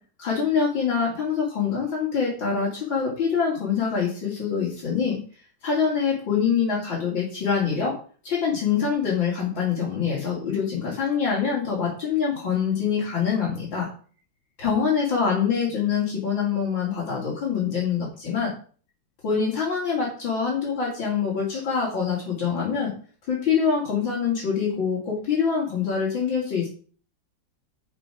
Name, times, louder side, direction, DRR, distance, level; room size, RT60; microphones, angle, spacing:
voice 1, 0.2-5.2 5.6-7.9 8.2-13.9 14.6-18.5 19.2-22.9 23.3-26.7, left 6 dB, 75° left, -5 dB, 3.8 m, -25 dB
11.0 x 6.1 x 5.0 m, 0.41 s
omnidirectional pair, 2.1 m